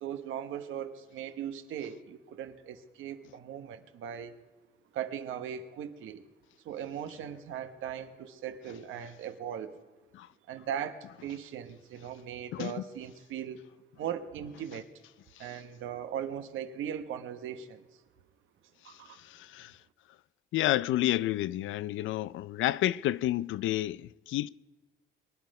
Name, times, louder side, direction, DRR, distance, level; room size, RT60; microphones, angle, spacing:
voice 1, 0.0-4.3 4.9-6.3 6.6-9.8 10.5-13.6 14.0-14.9 15.4-17.8 18.8-19.2, right 9 dB, 80° right, 1.1 m, -39 dB
voice 2, 12.5-12.8 15.4-15.5 18.9-19.8 20.5-24.5, left 14 dB, 80° left, 0.4 m, -30 dB
23.0 x 10.5 x 5.3 m
cardioid pair, 90°, 20 cm